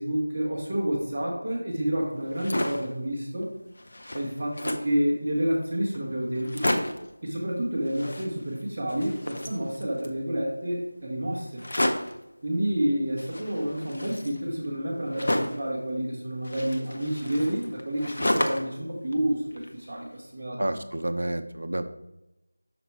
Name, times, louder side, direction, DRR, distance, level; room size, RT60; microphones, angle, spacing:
voice 1, 0.0-3.6 4.1-6.9 7.2-11.6 12.4-20.6, right 1 dB, 15° right, -8 dB, 0.8 m, -29 dB
sound 1, 2.2-2.9 3.4-3.5 3.7-5.0 5.6-5.7 5.9-6.0 6.3-7.1 7.8-8.6 8.9-10.2 11.6-12.2 13.2-15.7 16.4-18.8 19.1-20.0, left 1 dB, 45° left, 0.6 m, -31 dB
voice 2, 20.6-21.8, right 1 dB, 65° right, 7 dB, 0.6 m, -29 dB
5.9 x 4.1 x 4.5 m, 0.92 s
figure-of-eight pair, 180°, 0 cm